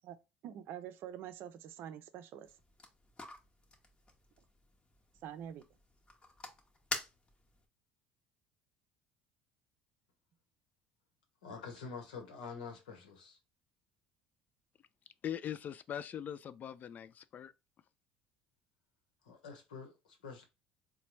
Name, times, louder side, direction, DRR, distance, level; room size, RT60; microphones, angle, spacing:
voice 1, 0.4-2.5 5.2-5.6, right 10 dB, 60° right, 0.5 m, -46 dB
sound 1, 2.4-7.7, left 2 dB, 25° left, 0.9 m, -47 dB
voice 2, 11.4-13.4 19.2-20.4, left 5 dB, 90° left, 1.0 m, -47 dB
voice 3, 15.2-17.5, left 9 dB, 45° left, 0.3 m, -41 dB
4.0 x 2.2 x 3.0 m
hypercardioid pair, 75°, 4 cm